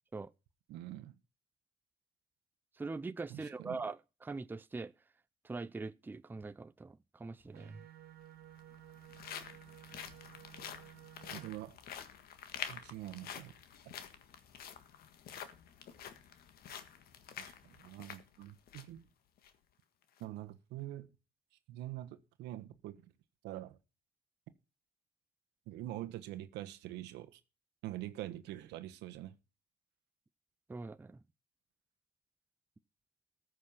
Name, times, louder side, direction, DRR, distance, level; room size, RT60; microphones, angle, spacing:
voice 1, 0.7-1.1 3.3-3.8 11.3-11.8 12.7-13.5 13.9-14.0 17.4-19.1 20.2-21.1 21.7-23.0 23.4-23.8 25.7-27.4 27.8-29.3, right 14 dB, 85° right, 1.3 m, -45 dB
voice 2, 2.8-4.9 5.4-7.8 30.7-31.2, right 3 dB, 10° right, 0.5 m, -42 dB
sound 1, 7.4-7.5 8.4-19.0 19.4-19.5 20.0-20.2, left 8 dB, 65° left, 1.6 m, -48 dB
sound 2, 7.5-11.5, right 12 dB, 70° right, 2.1 m, -55 dB
14.0 x 6.5 x 5.8 m
cardioid pair, 110°, 17 cm